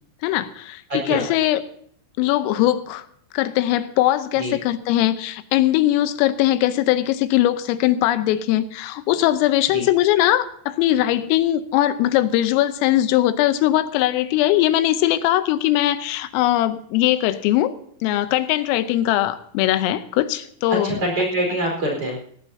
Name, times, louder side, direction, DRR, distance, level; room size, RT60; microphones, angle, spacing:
voice 1, 0.2-1.6 2.2-3.1 3.3-17.8 18.0-21.0, left 14 dB, 85° left, 11 dB, 3.4 m, -20 dB
voice 2, 0.9-1.2 4.4-4.5 9.7-9.8 20.7-22.2, right 1 dB, 30° right, 1 dB, 5.0 m, -24 dB
18.0 x 17.5 x 2.8 m, 0.62 s
omnidirectional pair, 5.9 m